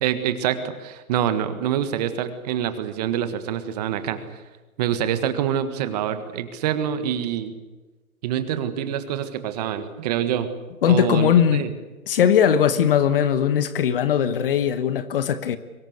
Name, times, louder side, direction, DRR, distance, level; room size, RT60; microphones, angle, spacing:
voice 1, 0.0-4.2 4.8-7.5 8.2-10.5 10.9-11.7, right 10 dB, 25° right, 1.6 m, -26 dB
voice 2, 10.8-11.7 12.1-15.6, left 8 dB, 40° left, 1.3 m, -19 dB
24.0 x 19.5 x 8.1 m
hypercardioid pair, 155°, 44 cm